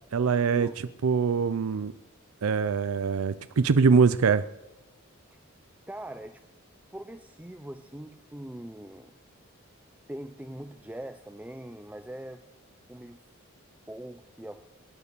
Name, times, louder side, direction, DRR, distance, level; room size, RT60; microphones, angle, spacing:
voice 1, 0.1-0.7 1.0-1.9 2.4-4.4, right 5 dB, 80° right, 13 dB, 0.5 m, -23 dB
voice 2, 5.9-6.4 6.9-9.1 10.1-12.4 12.9-13.2 13.9-14.6, right 1 dB, 5° right, 9 dB, 0.5 m, -42 dB
22.0 x 9.5 x 6.8 m, 1.0 s
head